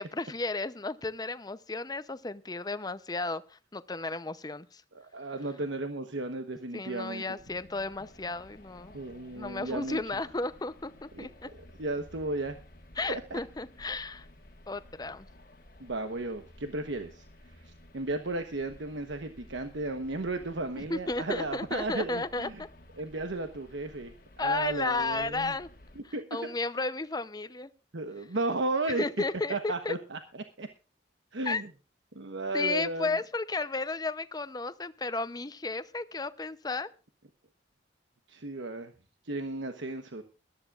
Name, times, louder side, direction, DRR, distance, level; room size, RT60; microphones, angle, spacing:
voice 1, 0.0-4.8 6.7-9.0 9.3-11.5 13.0-14.3 14.7-15.3 20.8-22.7 24.4-25.7 26.0-27.7 29.0-29.9 31.4-31.6 32.5-36.9, left 3 dB, 20° left, 13 dB, 0.7 m, -33 dB
voice 2, 4.9-7.2 8.9-10.0 11.2-11.3 11.8-12.6 13.1-13.4 15.8-22.5 23.0-25.5 26.1-26.2 27.9-29.0 29.5-30.2 30.6-30.7 31.3-31.7 32.1-33.1 38.3-38.9 39.2-40.2, right 2 dB, 85° right, 7 dB, 1.1 m, -34 dB
sound 1, 7.4-26.0, left 1 dB, 50° left, 1.5 m, -54 dB
21.0 x 13.0 x 2.5 m, 0.33 s
head